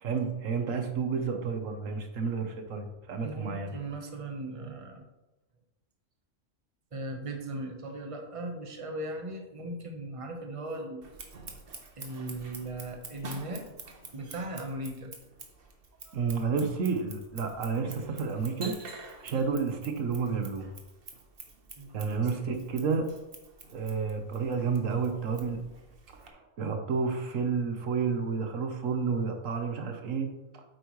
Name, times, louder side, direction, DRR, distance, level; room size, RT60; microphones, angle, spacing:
voice 1, 0.0-3.7 16.1-18.7 19.2-20.7 21.9-23.1 23.7-25.6 26.1-30.6, right 5 dB, 90° right, 5 dB, 1.4 m, -31 dB
voice 2, 3.2-5.0 6.9-11.0 12.0-15.1 21.8-22.0, right 1 dB, 25° right, 3 dB, 1.1 m, -38 dB
Scissors, 11.0-26.3, right 4 dB, 50° right, 1.2 m, -48 dB
9.0 x 8.3 x 3.2 m, 1.0 s
omnidirectional pair, 1.3 m